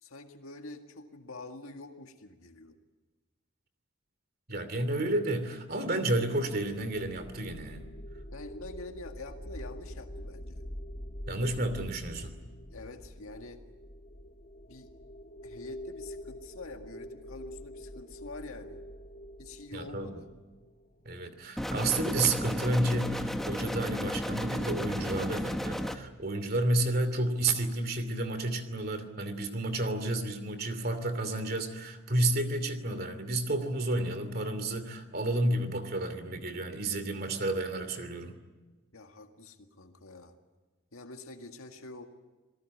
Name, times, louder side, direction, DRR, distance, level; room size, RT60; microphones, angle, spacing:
voice 1, 0.0-2.8 8.3-10.6 12.7-13.6 14.7-14.9 15.4-18.8 19.4-20.3 38.9-40.4 40.9-42.0, left 2 dB, 85° left, 5 dB, 1.9 m, -46 dB
voice 2, 4.5-7.9 11.3-12.3 19.7-20.1 21.0-38.3, right 2 dB, 45° right, 10 dB, 2.8 m, -31 dB
sound 1, 7.1-21.4, equal, 40° left, 1.4 m, -45 dB
sound 2, 21.6-26.0, equal, ahead, 1.2 m, -33 dB
28.0 x 18.0 x 9.5 m, 1.2 s
head